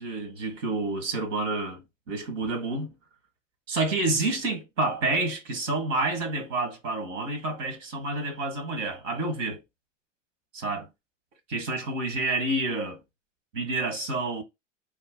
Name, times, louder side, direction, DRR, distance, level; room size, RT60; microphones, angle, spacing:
voice 1, 0.0-2.9 3.7-9.6 10.5-10.9 11.5-13.0 13.5-14.4, right 2 dB, 80° right, 1.5 m, -29 dB
3.2 x 2.2 x 3.6 m
hypercardioid pair, 85°, 37 cm